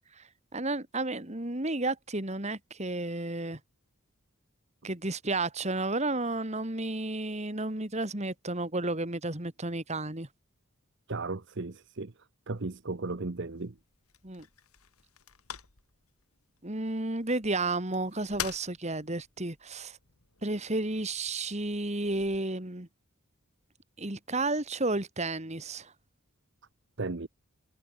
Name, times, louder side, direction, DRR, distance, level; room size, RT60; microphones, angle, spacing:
voice 1, 0.5-3.6 4.8-10.3 14.2-14.5 16.6-20.0 20.4-22.9 24.0-25.9, right 2 dB, 30° right, 2.4 m, -32 dB
voice 2, 11.1-12.1 12.5-13.8 27.0-27.3, right 3 dB, 55° right, 0.9 m, -35 dB
sound 1, 12.4-22.4, left 9 dB, 90° left, 2.7 m, -47 dB
head